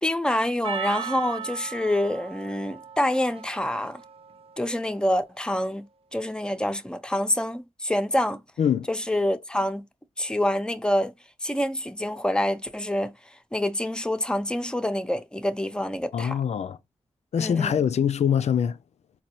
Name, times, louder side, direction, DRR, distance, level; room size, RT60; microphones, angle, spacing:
voice 1, 0.0-4.0 4.6-8.4 8.9-9.8 10.2-11.1 11.4-13.1 13.5-16.4 17.4-17.7, left 1 dB, 5° left, 0.6 m, -26 dB
Percussion, 0.6-5.2, right 8 dB, 55° right, 0.5 m, -38 dB
voice 2, 16.1-16.8 17.3-18.8, left 8 dB, 70° left, 0.4 m, -23 dB
4.1 x 2.3 x 2.9 m
cardioid pair, 50°, 12 cm